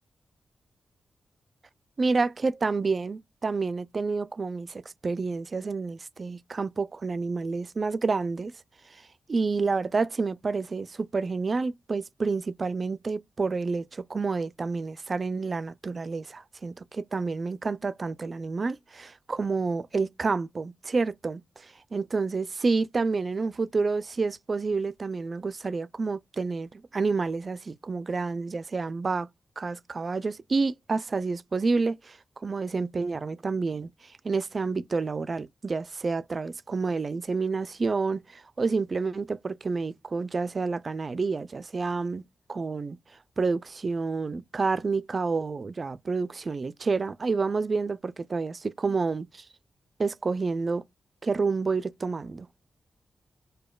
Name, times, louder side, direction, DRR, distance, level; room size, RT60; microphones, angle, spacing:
voice 1, 2.0-8.5 9.3-21.4 21.9-29.3 29.6-32.2 32.4-33.9 34.2-42.2 42.5-43.0 43.4-49.4 50.0-50.8 51.2-52.5, right 4 dB, 40° right, 0.3 m, -29 dB
5.0 x 2.1 x 2.3 m
wide cardioid pair, 100°, 0 cm